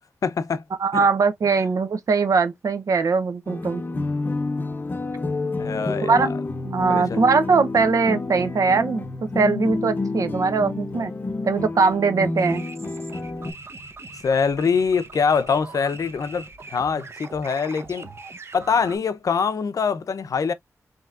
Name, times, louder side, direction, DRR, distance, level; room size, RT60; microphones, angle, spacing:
voice 1, 0.2-0.6 5.6-6.3 6.9-7.2 14.2-18.1 18.5-20.5, left 5 dB, 70° left, 0.6 m, -24 dB
voice 2, 0.8-3.8 6.0-6.3 6.6-9.0 9.3-11.1 11.4-12.6, right 4 dB, 70° right, 0.9 m, -21 dB
sound 1, 3.5-13.5, left 3 dB, 35° left, 0.7 m, -29 dB
sound 2, 12.4-19.0, right 3 dB, 45° right, 0.9 m, -41 dB
5.3 x 3.0 x 2.4 m
wide cardioid pair, 140°, 6 cm